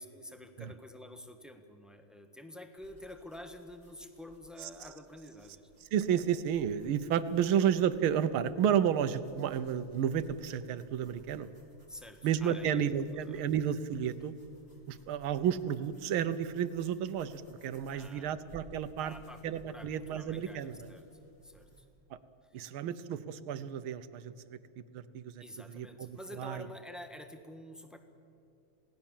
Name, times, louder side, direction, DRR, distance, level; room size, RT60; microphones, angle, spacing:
voice 1, 0.0-5.7 11.9-13.5 17.9-18.4 19.0-21.1 21.4-21.8 22.5-22.6 25.4-28.0, left 1 dB, ahead, 6 dB, 1.0 m, -49 dB
sound 1, 2.8-21.8, right 2 dB, 25° left, 3.9 m, -61 dB
voice 2, 5.9-11.5 12.2-14.3 14.9-19.1 19.4-20.8 22.1-22.2 22.5-24.6 24.9-26.6, right 9 dB, 80° right, 13 dB, 1.7 m, -32 dB
27.5 x 18.0 x 7.3 m, 2.6 s
omnidirectional pair, 2.3 m